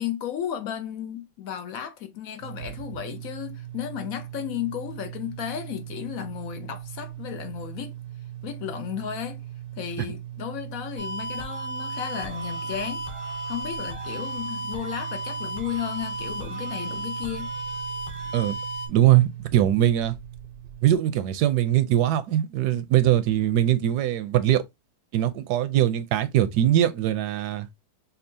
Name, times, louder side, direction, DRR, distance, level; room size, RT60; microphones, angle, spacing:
voice 1, 0.0-8.0 8.4-9.4 9.8-13.1 13.5-17.5, left 10 dB, 70° left, 0.9 m, -34 dB
sound 1, 2.4-21.0, right 12 dB, 55° right, 0.6 m, -39 dB
sound 2, 11.0-18.9, right 1 dB, 25° left, 0.9 m, -34 dB
voice 2, 18.9-20.2 20.8-24.6 25.1-27.7, right 12 dB, 80° right, 1.1 m, -21 dB
5.4 x 2.3 x 2.6 m
omnidirectional pair, 1.7 m